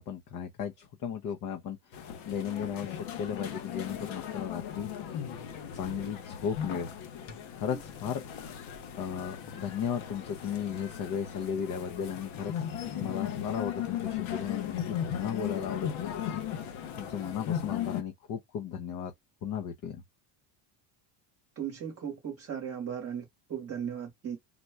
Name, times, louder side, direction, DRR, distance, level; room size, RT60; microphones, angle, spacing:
voice 1, 0.0-4.9 5.7-6.9 7.5-8.2 9.0-12.6 12.8-14.8 15.2-16.4 17.0-19.1 19.4-20.0, left 8 dB, 40° left, 0.7 m, -35 dB
sound 1, 1.9-18.0, left 9 dB, 80° left, 1.1 m, -37 dB
voice 2, 21.6-24.4, right 8 dB, 30° right, 1.0 m, -37 dB
4.1 x 2.2 x 4.5 m
cardioid pair, 160°, 48 cm